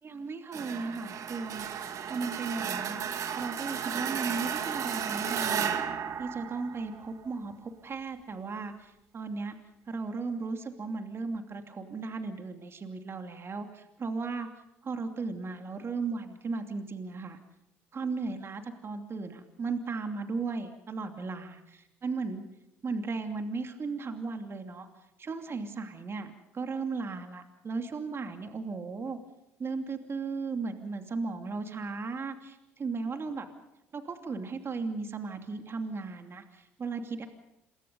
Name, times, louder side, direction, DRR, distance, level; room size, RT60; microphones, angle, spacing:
voice 1, 0.0-1.7 2.1-3.0 3.3-5.8 6.2-9.6 9.9-14.5 14.8-17.4 17.9-22.4 22.8-24.9 25.2-29.2 29.6-33.5 33.9-37.3, right 4 dB, 40° right, 6 dB, 2.8 m, -36 dB
sound 1, 0.5-7.2, right 8 dB, 55° right, 2.3 m, -34 dB
27.5 x 23.0 x 5.5 m, 0.84 s
hypercardioid pair, 60°, 7 cm